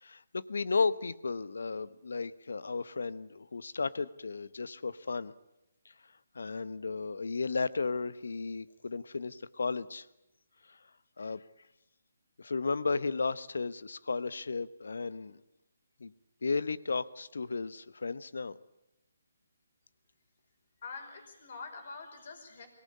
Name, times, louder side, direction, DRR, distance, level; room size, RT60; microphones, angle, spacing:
voice 1, 0.0-5.3 6.3-10.1 10.7-10.8 11.2-11.4 12.4-15.4 16.0-16.1 16.4-18.6, left 4 dB, 70° left, 17 dB, 1.0 m, -34 dB
voice 2, 20.8-22.7, left 4 dB, 55° left, 5 dB, 5.4 m, -45 dB
23.5 x 18.5 x 8.6 m, 0.89 s
figure-of-eight pair, 150°, 0 cm